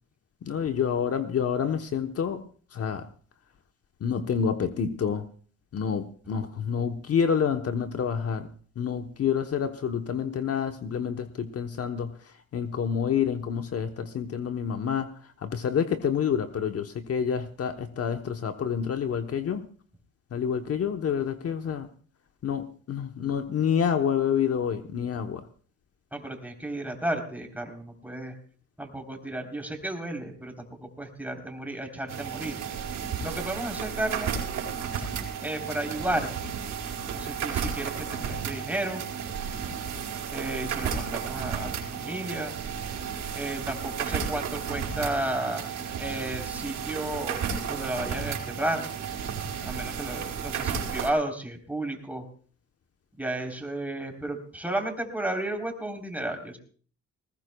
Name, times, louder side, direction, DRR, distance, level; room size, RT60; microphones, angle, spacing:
voice 1, 0.4-2.4 2.7-3.1 4.0-5.3 5.7-8.5 8.8-19.6 20.3-21.9 22.4-25.5, left 7 dB, 55° left, 7 dB, 1.0 m, -28 dB
voice 2, 26.1-28.4 28.8-32.5 33.2-34.3 35.4-36.6 37.1-38.0 38.2-39.0 40.3-42.5 43.3-47.4 47.7-48.8 49.6-52.2 53.1-56.6, right 1 dB, 5° right, 3 dB, 3.6 m, -33 dB
sound 1, 32.1-51.1, right 7 dB, 75° right, 4.4 m, -33 dB
20.0 x 19.5 x 2.3 m, 0.43 s
cardioid pair, 90°, 30 cm